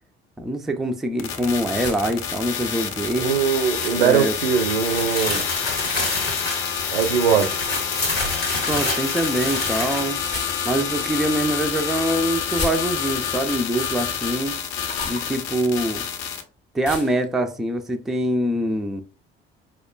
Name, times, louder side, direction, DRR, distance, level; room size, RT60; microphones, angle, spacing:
voice 1, 0.4-3.4 3.9-4.4 8.7-10.2 10.6-14.6 15.0-16.1 16.7-19.0, right 1 dB, ahead, 0.3 m, -24 dB
sound 1, 1.2-16.4, left 8 dB, 60° left, 0.6 m, -28 dB
sound 2, 1.7-2.3 3.6-4.1 5.7-6.2 8.1-8.4 10.2-10.9 12.4-13.3 14.8-15.3 16.8-17.2, left 3 dB, 25° left, 0.7 m, -34 dB
voice 2, 3.2-5.5 6.9-7.5, right 7 dB, 75° right, 0.5 m, -21 dB
sound 3, 4.6-10.4, left 2 dB, 85° left, 0.9 m, -28 dB
4.5 x 2.1 x 2.2 m
figure-of-eight pair, 50°, 29 cm